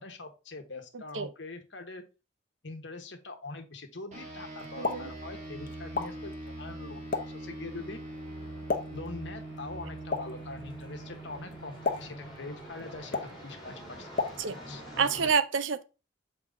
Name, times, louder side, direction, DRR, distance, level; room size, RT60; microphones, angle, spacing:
voice 1, 0.0-2.0 2.6-8.0 8.9-14.2 14.7-14.8, left 3 dB, 65° left, 1.2 m, -43 dB
sound 1, 4.1-13.8, right 2 dB, 35° right, 2.1 m, -43 dB
Explosion, 4.6-14.9, left 3 dB, 45° left, 0.8 m, -38 dB
sound 2, 5.4-15.3, equal, ahead, 3.0 m, -49 dB
voice 2, 15.0-15.8, right 6 dB, 80° right, 0.6 m, -27 dB
6.9 x 4.5 x 3.7 m
head